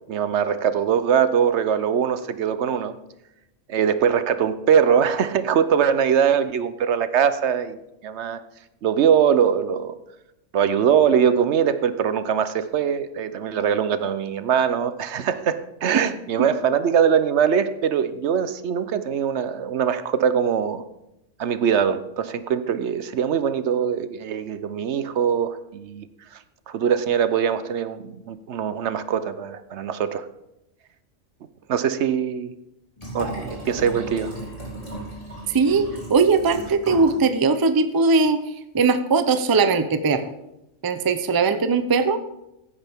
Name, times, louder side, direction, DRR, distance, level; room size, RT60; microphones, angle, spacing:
voice 1, 0.1-3.0 3.7-7.8 8.0-8.4 8.8-10.0 10.5-20.8 21.4-26.1 26.7-30.3 31.7-32.5 33.1-34.4, right 8 dB, 70° right, 13 dB, 1.0 m, -22 dB
Liquid, 33.0-37.2 37.5-37.6, equal, 30° left, 5.0 m, -35 dB
voice 2, 35.5-38.4 38.7-40.3 40.8-42.2, right 4 dB, 25° right, 10 dB, 0.5 m, -20 dB
15.0 x 10.0 x 3.5 m, 0.89 s
omnidirectional pair, 1.3 m